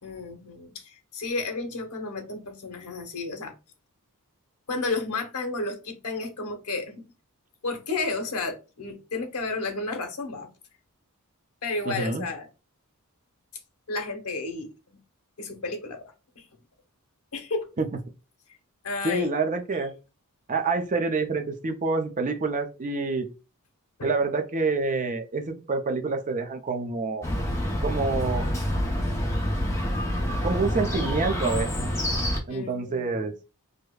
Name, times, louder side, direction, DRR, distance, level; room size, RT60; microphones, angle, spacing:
voice 1, 0.0-3.5 4.7-7.0 7.6-10.5 11.6-12.5 13.9-15.0 15.4-16.5 17.3-17.7 18.8-19.3 24.0-24.1 32.5-33.3, left 3 dB, 80° left, 0.9 m, -32 dB
voice 2, 11.9-12.3 17.8-17.9 19.0-19.9 20.5-23.3 24.0-27.2 27.8-28.5 30.4-31.9 32.5-33.3, right 3 dB, 35° right, 0.5 m, -27 dB
Chirp tweet, 27.2-32.4, equal, 15° left, 0.7 m, -27 dB
4.9 x 2.1 x 2.3 m
head